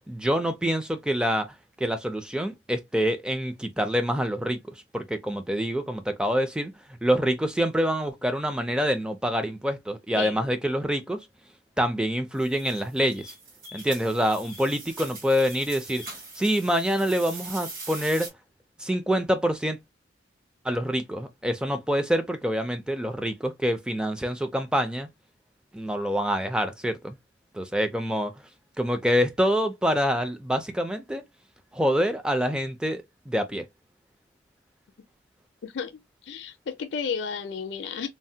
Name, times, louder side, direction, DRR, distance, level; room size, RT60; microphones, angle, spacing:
voice 1, 0.1-1.5 1.8-4.6 4.9-6.7 7.0-11.2 11.8-13.3 13.7-16.0 16.4-18.3 18.8-19.8 20.6-25.1 25.7-27.2 27.5-28.3 28.8-31.2 31.7-33.6, equal, 5° right, 0.4 m, -26 dB
voice 2, 10.2-10.5 35.6-38.1, left 6 dB, 70° left, 0.4 m, -33 dB
sound 1, 12.4-18.3, right 3 dB, 50° right, 1.3 m, -42 dB
3.2 x 2.1 x 2.7 m
head